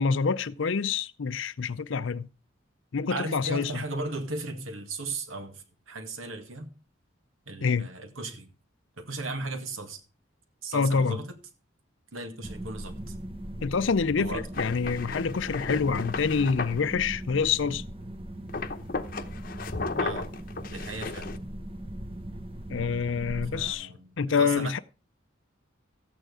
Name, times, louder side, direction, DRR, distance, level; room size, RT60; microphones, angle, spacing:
voice 1, 0.0-2.3 2.9-3.8 7.6-7.9 10.7-11.2 13.6-17.8 22.7-23.9 24.2-24.8, left 5 dB, 70° left, 0.5 m, -27 dB
voice 2, 3.1-6.7 7.5-8.5 9.0-10.0 10.6-11.4 12.1-13.2 14.2-14.5 20.0-20.3 20.7-21.3 23.5-24.1 24.4-24.8, right 2 dB, 85° right, 2.0 m, -36 dB
sound 1, 12.4-23.7, right 1 dB, 25° right, 0.9 m, -39 dB
sound 2, 14.5-16.8 18.5-21.4, left 3 dB, 45° left, 0.8 m, -35 dB
14.0 x 9.0 x 4.9 m
head